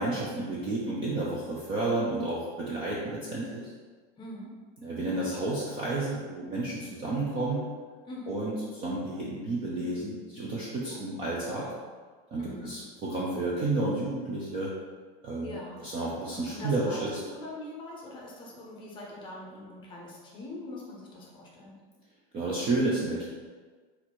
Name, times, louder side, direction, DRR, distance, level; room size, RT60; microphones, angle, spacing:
voice 1, 0.0-3.7 4.8-7.6 8.3-11.7 12.3-14.7 15.2-17.2 22.3-23.3, right 2 dB, 20° right, -6 dB, 0.3 m, -31 dB
voice 2, 4.2-4.5 8.1-8.4 10.8-11.1 12.4-12.8 15.4-15.8 16.3-21.8, left 2 dB, 15° left, -3 dB, 0.6 m, -42 dB
4.3 x 2.6 x 4.3 m, 1.5 s
supercardioid pair, 170°, 29 cm